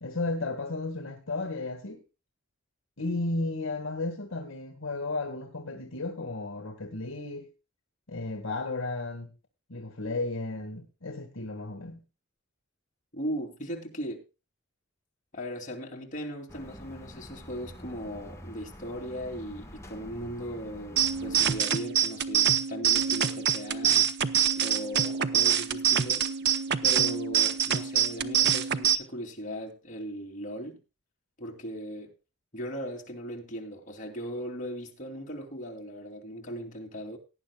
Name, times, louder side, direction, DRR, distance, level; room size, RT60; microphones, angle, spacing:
voice 1, 0.0-2.0 3.0-7.5 8.1-9.3 9.7-12.0, left 2 dB, 65° left, 1.8 m, -34 dB
voice 2, 13.1-14.2 15.3-24.1 24.6-26.3 26.8-30.8 31.4-32.1 32.5-37.2, equal, 40° left, 2.9 m, -38 dB
sound 1, 16.5-21.6, equal, 15° left, 1.5 m, -46 dB
sound 2, 21.0-29.0, right 9 dB, 55° right, 0.8 m, -25 dB
18.0 x 10.5 x 2.3 m
head